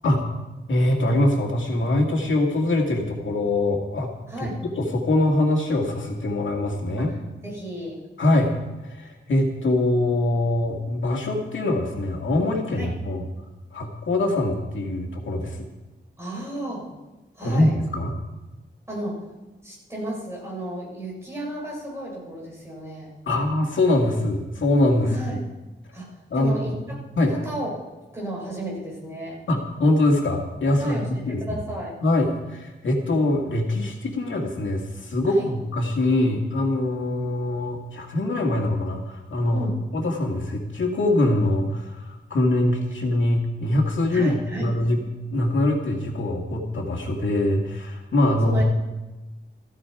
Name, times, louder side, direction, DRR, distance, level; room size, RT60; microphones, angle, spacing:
voice 1, 0.7-4.1 4.4-4.5 4.8-7.1 8.2-8.5 8.8-13.2 13.7-15.7 17.4-18.1 23.3-25.4 26.3-26.8 27.2-27.3 29.5-31.4 32.0-39.7 39.9-45.0 45.3-48.6, left 1 dB, 80° left, 0 dB, 2.2 m, -23 dB
voice 2, 4.3-4.6 7.0-7.2 7.4-8.0 12.7-12.9 16.2-16.9 17.4-17.8 18.9-19.2 19.6-23.1 25.0-25.4 25.9-27.0 27.3-27.7 28.1-29.4 30.7-32.0 35.2-35.5 39.5-39.8 44.1-44.8 48.4-48.6, right 1 dB, 15° right, -4 dB, 6.1 m, -33 dB
14.5 x 14.5 x 4.9 m, 1.1 s
wide cardioid pair, 155°, 20 cm